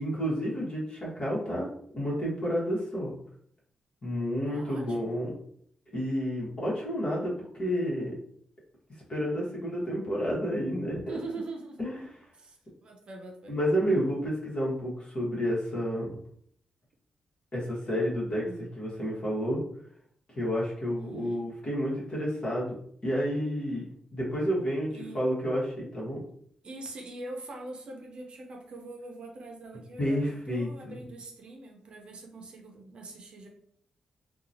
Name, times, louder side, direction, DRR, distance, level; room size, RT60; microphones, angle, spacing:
voice 1, 0.0-1.7 1.9-3.1 4.0-5.3 5.9-8.1 9.1-11.2 11.8-12.1 13.5-16.2 17.5-19.6 20.3-22.7 23.0-26.2 30.0-31.0, equal, 45° left, -5 dB, 1.2 m, -30 dB
voice 2, 4.4-5.1 11.1-11.8 12.4-13.6 18.4-18.7 21.0-21.5 24.9-25.2 26.6-33.5, right 2 dB, 55° right, 2 dB, 0.6 m, -43 dB
2.8 x 2.3 x 2.6 m, 0.64 s
cardioid pair, 90°, 2 cm